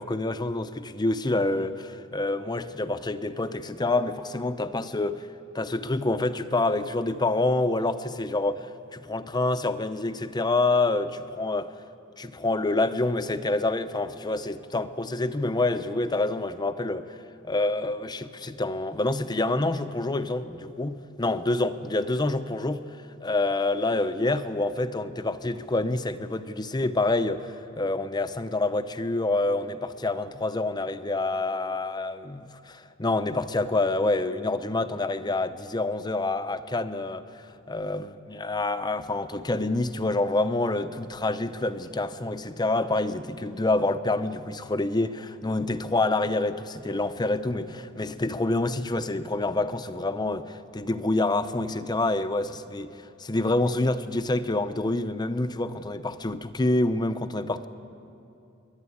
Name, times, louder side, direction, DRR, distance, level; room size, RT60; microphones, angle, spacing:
voice 1, 0.0-5.3 5.5-11.7 12.2-17.1 17.4-22.8 23.2-57.7, left 2 dB, 20° left, 10 dB, 0.7 m, -27 dB
29.5 x 11.5 x 8.5 m, 2.8 s
head